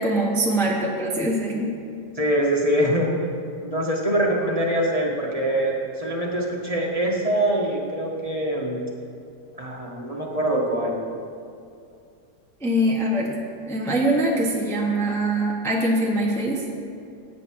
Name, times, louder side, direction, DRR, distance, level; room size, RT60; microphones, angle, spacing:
voice 1, 0.0-1.8 12.6-13.4 13.7-16.6, right 1 dB, ahead, -2 dB, 1.2 m, -23 dB
voice 2, 2.1-3.1 3.6-8.8 9.6-11.0, right 1 dB, 25° right, -2 dB, 1.5 m, -24 dB
16.5 x 9.0 x 4.7 m, 2.4 s
omnidirectional pair, 1.7 m